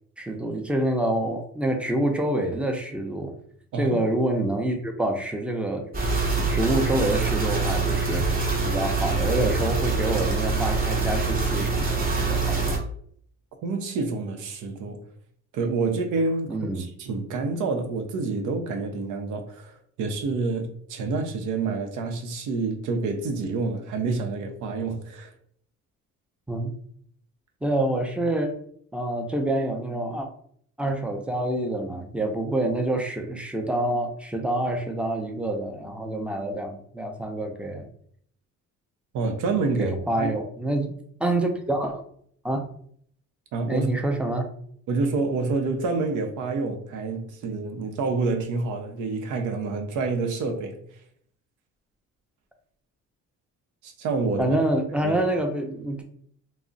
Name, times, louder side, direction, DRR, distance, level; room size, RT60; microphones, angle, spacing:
voice 1, 0.2-3.3 3.8-5.9 6.4-8.3 8.6-12.8 16.5-16.8 26.5-26.8 27.6-28.5 28.9-30.3 30.8-37.9 39.8-40.9 41.2-42.0 42.4-42.7 43.7-44.5 54.4-56.0, right 1 dB, 5° right, 0.5 m, -27 dB
sound 1, 5.9-12.8, right 3 dB, 30° right, 0.7 m, -25 dB
voice 2, 13.6-15.0 15.5-25.3 39.1-40.3 43.5-43.9 44.9-50.8 53.8-54.6 55.0-55.2, right 3 dB, 85° right, 0.6 m, -28 dB
2.3 x 2.0 x 3.8 m
cardioid pair, 90°, 30 cm